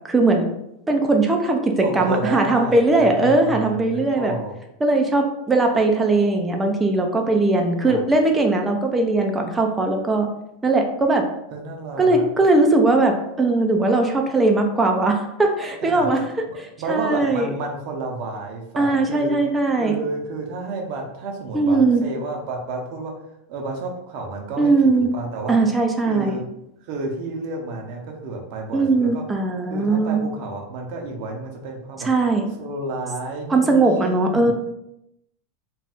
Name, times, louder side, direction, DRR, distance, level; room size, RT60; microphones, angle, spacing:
voice 1, 0.0-0.5 0.9-4.3 4.8-10.3 10.6-11.2 12.0-16.2 16.9-17.5 18.8-20.0 21.5-22.0 24.6-25.1 25.5-26.4 28.7-30.3 32.0-32.5 33.5-34.5, right 2 dB, 15° right, 3 dB, 0.5 m, -19 dB
voice 2, 1.8-4.5 7.9-8.0 11.5-12.3 15.8-16.1 16.5-19.4 19.8-23.1 23.5-24.7 25.0-25.6 26.1-26.5 26.8-29.2 29.7-32.1 32.6-34.5, right 3 dB, 55° right, 1 dB, 0.7 m, -31 dB
2.6 x 2.3 x 3.5 m, 0.81 s
hypercardioid pair, 95°, 0 cm